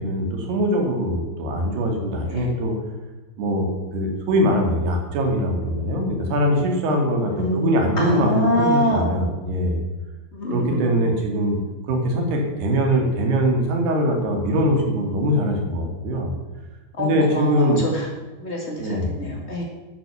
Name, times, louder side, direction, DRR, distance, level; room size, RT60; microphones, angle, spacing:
voice 1, 0.0-2.7 3.4-9.8 10.5-11.6 11.9-16.3 17.0-17.8 18.8-19.1, equal, 65° right, 2 dB, 4.1 m, -22 dB
voice 2, 7.3-9.0 10.3-11.1 17.0-18.1 18.4-19.6, equal, 50° left, -1 dB, 0.8 m, -25 dB
11.0 x 10.0 x 7.0 m, 1.2 s
omnidirectional pair, 5.4 m